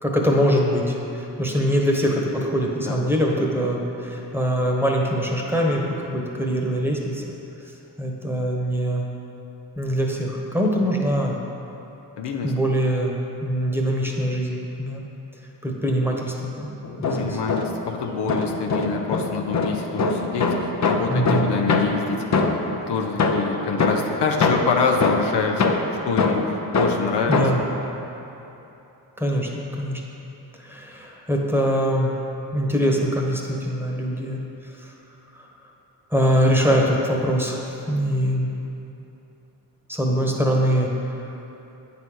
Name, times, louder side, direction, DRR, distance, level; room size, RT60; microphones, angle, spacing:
voice 1, 0.0-7.2 8.0-9.1 9.8-11.3 12.4-15.1 15.6-17.4 21.1-21.5 27.3-27.6 29.2-30.0 30.6-32.1 32.5-34.4 34.8-34.9 35.3-35.5 36.1-38.5 39.9-41.3, equal, 5° right, -1 dB, 1.3 m, -23 dB
voice 2, 12.2-12.5 17.2-27.6, left 4 dB, 75° left, 2 dB, 0.9 m, -26 dB
sound 1, 16.8-17.9 18.3-22.8 23.2-27.7, left 3 dB, 40° left, 0.8 m, -23 dB
8.7 x 4.1 x 6.3 m, 3.0 s
cardioid pair, 60°, 41 cm